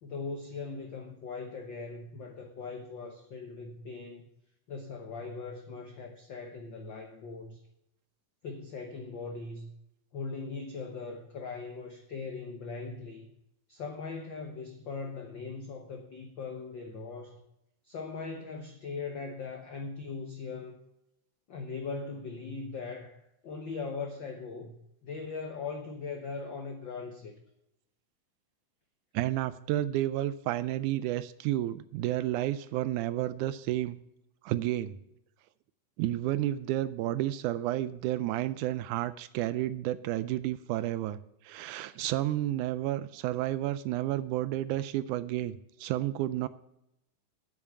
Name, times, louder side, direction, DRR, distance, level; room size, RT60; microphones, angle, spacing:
voice 1, 0.0-4.3 4.7-7.6 8.4-9.7 10.1-13.3 13.7-17.4 17.8-20.8 21.5-27.4, left 4 dB, 75° left, 4 dB, 1.0 m, -40 dB
voice 2, 29.1-34.0 34.4-35.0 36.0-41.2 41.4-46.5, right 14 dB, 80° right, 15 dB, 1.9 m, -31 dB
8.4 x 6.8 x 8.4 m, 0.81 s
omnidirectional pair, 3.7 m